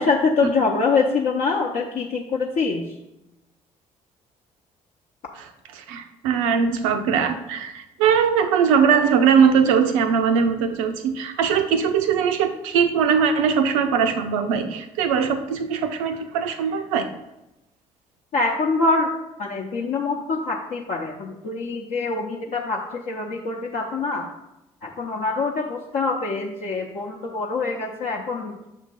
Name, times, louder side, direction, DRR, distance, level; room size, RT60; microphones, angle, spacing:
voice 1, 0.0-2.8 18.3-19.1 19.4-24.3 24.8-28.5, left 4 dB, 50° left, -2 dB, 0.7 m, -24 dB
voice 2, 5.8-17.1, right 6 dB, 70° right, 8 dB, 0.6 m, -20 dB
6.5 x 2.7 x 5.4 m, 0.92 s
figure-of-eight pair, 45°, 17 cm